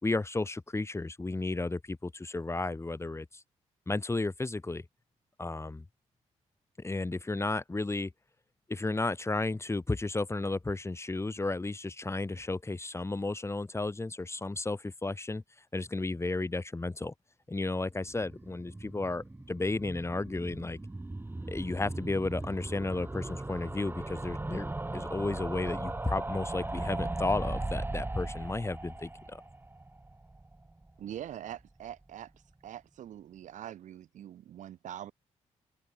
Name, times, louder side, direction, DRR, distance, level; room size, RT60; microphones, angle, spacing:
voice 1, 0.0-3.4 3.9-4.8 5.4-5.8 6.8-8.1 8.7-15.4 15.7-17.1 17.5-20.8 21.5-29.4, left 2 dB, 20° left, 3.0 m, -33 dB
sound 1, 17.9-31.0 31.3-31.4 31.6-31.7 31.9-32.0, right 2 dB, 15° right, 2.4 m, -38 dB
voice 2, 31.0-32.3 32.6-35.1, right 11 dB, 75° right, 5.7 m, -43 dB
open air
supercardioid pair, 65°, 13 cm